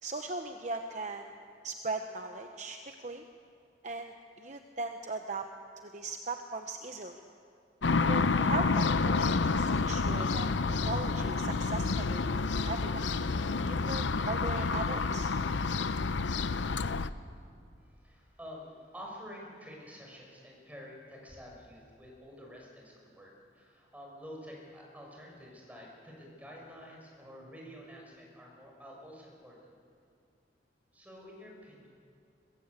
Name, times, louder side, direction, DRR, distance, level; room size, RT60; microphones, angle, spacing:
voice 1, 0.0-1.3 1.6-3.2 3.8-5.5 5.8-7.2 8.1-10.5 10.9-13.0 13.7-15.3, right 3 dB, 40° right, 5 dB, 0.9 m, -38 dB
sound 1, 7.8-17.1, left 4 dB, 80° left, 0.7 m, -29 dB
voice 2, 17.8-29.7 30.9-31.9, equal, 10° right, -2 dB, 5.9 m, -49 dB
22.0 x 20.5 x 8.3 m, 2.4 s
head